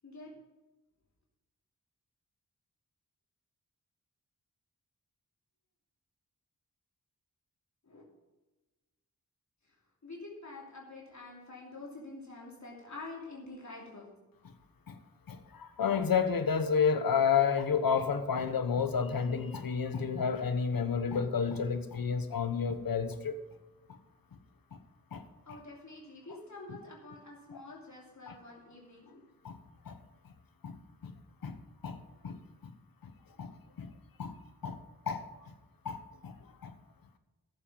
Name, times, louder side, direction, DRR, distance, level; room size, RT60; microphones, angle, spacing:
voice 1, 0.0-0.4 7.8-8.0 10.0-14.1 25.5-29.2, left 2 dB, 50° left, -3 dB, 3.0 m, -47 dB
voice 2, 15.3-23.3 23.9-24.0 24.7-24.8 25.1-25.2 27.5-27.6 28.3-28.4 29.4-29.6 29.9-30.0 30.6-30.8 31.0-31.1 31.4-32.7 33.0-33.1 33.4-33.5 33.8-33.9 34.2-34.4 34.6-35.3 35.8-36.4 36.6-36.7, left 6 dB, 75° left, 9 dB, 1.1 m, -31 dB
13.5 x 7.6 x 5.5 m, 1.2 s
cardioid pair, 60°, 35 cm